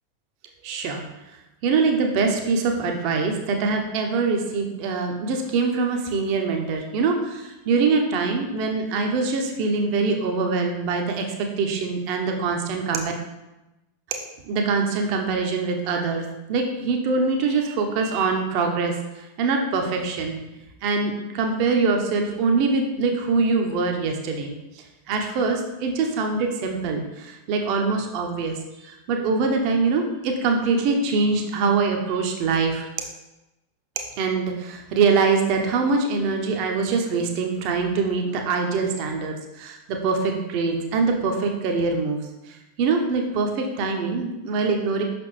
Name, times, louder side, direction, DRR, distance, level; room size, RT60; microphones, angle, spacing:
voice 1, 0.6-1.0 1.6-13.0 14.5-20.4 20.8-24.5 25.1-32.8 34.2-42.2 42.8-45.0, right 4 dB, 45° right, 2 dB, 0.8 m, -23 dB
5.9 x 5.8 x 3.2 m, 1.0 s
figure-of-eight pair, 90°, 0 cm